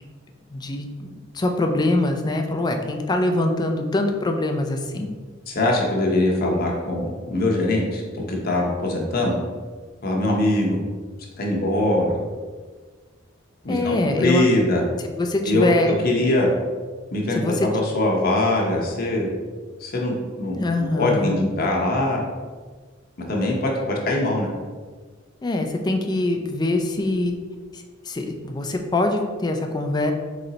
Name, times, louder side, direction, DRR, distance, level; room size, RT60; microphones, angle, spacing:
voice 1, 0.5-5.1 13.7-14.5 15.0-15.9 17.3-17.7 20.6-21.5 25.4-27.4 27.7-30.1, left 2 dB, 20° left, 4 dB, 0.4 m, -23 dB
voice 2, 5.5-9.4 10.0-10.8 11.4-12.2 13.6-14.8 15.5-15.7 16.0-16.5 17.1-19.3 19.8-20.6 20.9-22.3 23.3-24.5, left 1 dB, 50° left, -1 dB, 0.7 m, -22 dB
4.0 x 3.2 x 3.9 m, 1.5 s
head